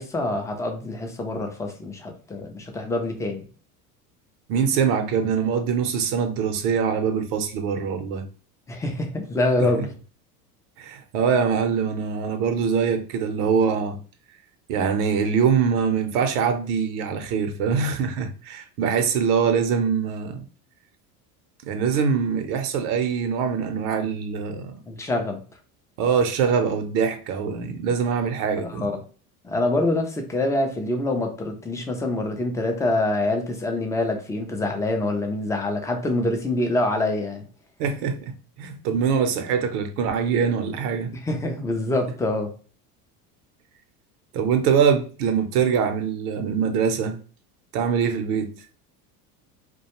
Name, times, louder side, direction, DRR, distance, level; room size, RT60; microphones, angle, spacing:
voice 1, 0.0-3.4 8.7-9.9 24.9-25.4 28.6-29.0 29.4-37.5 41.1-42.5, left 2 dB, 10° left, 0.3 m, -25 dB
voice 2, 4.5-8.2 9.6-9.7 10.8-14.0 14.7-20.4 21.7-24.7 26.0-28.9 37.8-41.1 44.3-47.2 47.7-48.5, right 6 dB, 75° right, 0.7 m, -23 dB
2.4 x 2.2 x 2.8 m
supercardioid pair, 95°, 45 cm